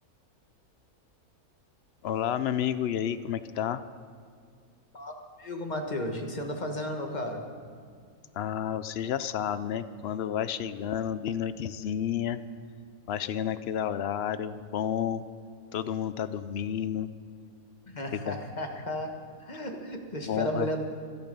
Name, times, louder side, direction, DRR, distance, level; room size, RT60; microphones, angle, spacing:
voice 1, 2.0-3.8 8.3-12.4 13.1-15.2 15.7-17.1 18.3-18.4 20.2-20.7, left 9 dB, 65° left, 13 dB, 0.6 m, -31 dB
voice 2, 5.4-7.5 17.9-20.8, left 1 dB, 30° left, 3 dB, 1.5 m, -34 dB
24.5 x 8.9 x 5.3 m, 2.2 s
omnidirectional pair, 1.5 m